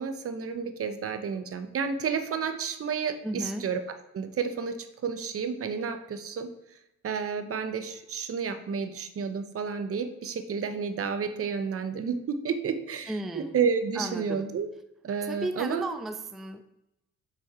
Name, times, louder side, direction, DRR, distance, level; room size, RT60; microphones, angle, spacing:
voice 1, 0.0-3.8 4.1-6.5 7.0-14.7 15.0-15.9, right 6 dB, 50° right, 9 dB, 0.9 m, -31 dB
voice 2, 3.2-3.7 13.1-13.6 14.0-14.5 15.3-16.6, right 1 dB, ahead, 9 dB, 0.4 m, -34 dB
6.0 x 5.9 x 4.3 m, 0.89 s
cardioid pair, 90°, 30 cm